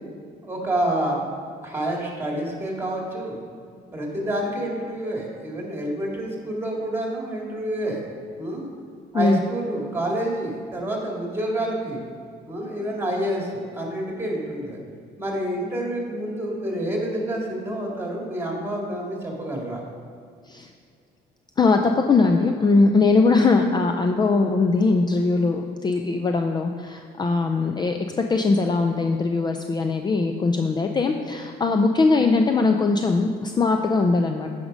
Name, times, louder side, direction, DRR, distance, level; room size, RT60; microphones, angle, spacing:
voice 1, 0.4-1.3 1.6-3.4 3.9-8.0 8.4-8.7 9.1-12.0 12.5-14.8 15.2-19.8, right 1 dB, 15° right, -1 dB, 2.1 m, -28 dB
voice 2, 21.6-34.5, left 3 dB, 25° left, 5 dB, 0.4 m, -21 dB
9.4 x 5.1 x 5.3 m, 2.2 s
cardioid pair, 110°, 17 cm